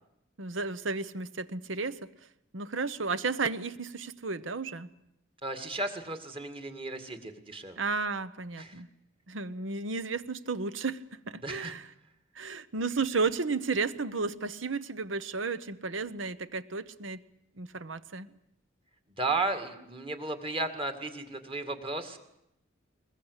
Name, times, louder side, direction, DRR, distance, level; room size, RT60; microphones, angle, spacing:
voice 1, 0.4-2.1 2.5-4.9 7.8-8.9 9.3-11.9 12.3-17.2 17.6-18.3, right 4 dB, 70° right, 14 dB, 1.0 m, -33 dB
voice 2, 5.4-7.8 8.6-8.8 11.4-11.7 19.2-22.2, right 2 dB, 30° right, 7 dB, 2.2 m, -34 dB
21.5 x 21.0 x 8.2 m, 0.81 s
head